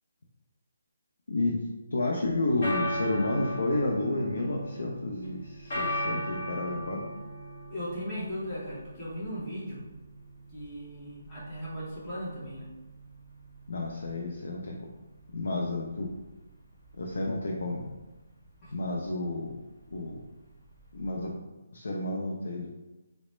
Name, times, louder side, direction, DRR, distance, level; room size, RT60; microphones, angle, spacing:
voice 1, 1.3-1.6 1.9-7.0 13.7-14.9 15.3-16.1 16.9-17.9 18.7-19.6 19.9-20.2 20.9-21.4 21.7-22.7, left 2 dB, 80° left, -1 dB, 0.5 m, -31 dB
sound 1, 2.2-21.3, equal, 40° left, 1.0 m, -39 dB
voice 2, 7.7-9.8 10.5-12.7 18.6-18.7, equal, 10° left, -10 dB, 0.8 m, -37 dB
3.8 x 2.1 x 3.1 m, 1.1 s
hypercardioid pair, 180°, 0 cm